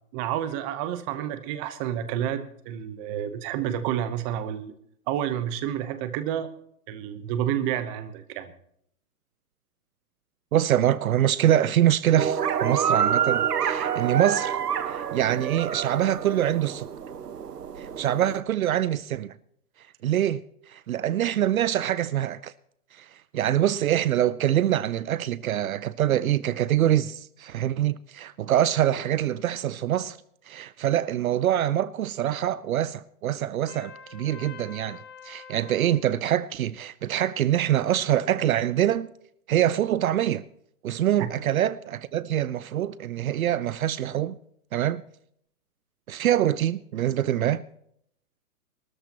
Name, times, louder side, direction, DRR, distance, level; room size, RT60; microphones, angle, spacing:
voice 1, 0.1-4.7 5.1-6.5 6.9-8.5 41.2-41.3, right 10 dB, 20° right, 1.0 m, -29 dB
voice 2, 10.5-14.6 14.9-16.9 17.8-19.3 20.0-20.4 20.7-22.5 22.9-30.2 30.5-39.1 39.5-40.4 40.8-44.4 44.7-45.0 46.1-47.6, right 11 dB, 65° right, 0.7 m, -25 dB
sound 1, 12.2-18.4, right 8 dB, 90° right, 1.3 m, -27 dB
Trumpet, 33.7-35.9, left 6 dB, 25° left, 2.0 m, -45 dB
22.5 x 13.5 x 3.0 m
hypercardioid pair, 150°, 46 cm